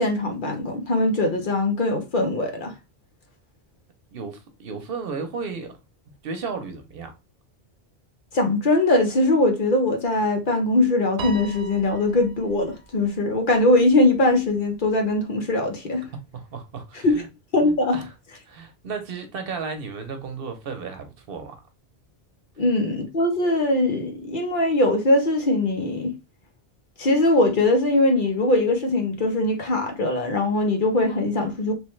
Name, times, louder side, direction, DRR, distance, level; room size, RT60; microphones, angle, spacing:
voice 1, 0.0-2.7 8.3-16.0 17.0-17.2 17.5-18.0 22.6-26.2 27.0-31.7, left 2 dB, 55° left, 0.9 m, -21 dB
voice 2, 4.1-5.7 6.2-7.1 16.3-17.3 17.9-18.1 18.5-21.6, right 5 dB, 65° right, 0.9 m, -34 dB
Piano, 11.2-13.7, right 3 dB, 90° right, 1.0 m, -39 dB
3.2 x 3.1 x 3.1 m
omnidirectional pair, 1.1 m